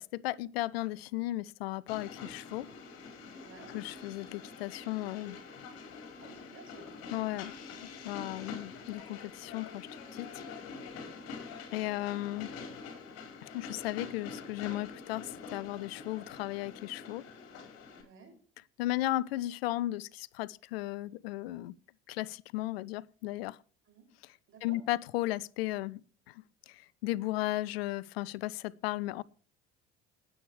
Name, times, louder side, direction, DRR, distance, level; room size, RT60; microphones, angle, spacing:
voice 1, 0.0-2.7 3.7-5.4 7.1-10.3 11.7-12.5 13.5-17.2 18.8-21.7 22.1-23.6 24.6-26.0 26.3-26.4 26.7-29.2, left 17 dB, 80° left, 0.6 m, -35 dB
Train, 1.9-18.0, left 5 dB, 60° left, 4.4 m, -46 dB
voice 2, 3.4-3.7 6.2-6.9 11.0-11.3 17.9-18.3 23.8-24.0 24.5-24.8, right 5 dB, 45° right, 6.2 m, -54 dB
19.5 x 8.6 x 3.2 m
hypercardioid pair, 65°, 30 cm